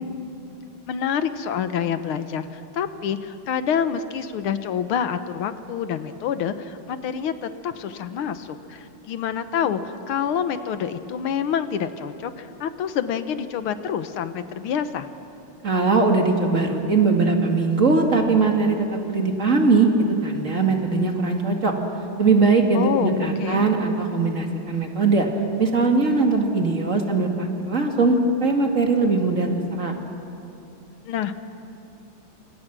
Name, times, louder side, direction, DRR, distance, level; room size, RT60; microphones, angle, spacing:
voice 1, 0.9-15.1 22.7-23.7 31.1-31.4, left 8 dB, 90° left, 10 dB, 1.9 m, -27 dB
voice 2, 15.6-18.8 19.1-19.9 20.2-21.7 22.2-25.3 25.6-29.9, right 3 dB, 35° right, 2 dB, 2.4 m, -20 dB
27.5 x 27.0 x 6.1 m, 2.8 s
omnidirectional pair, 2.3 m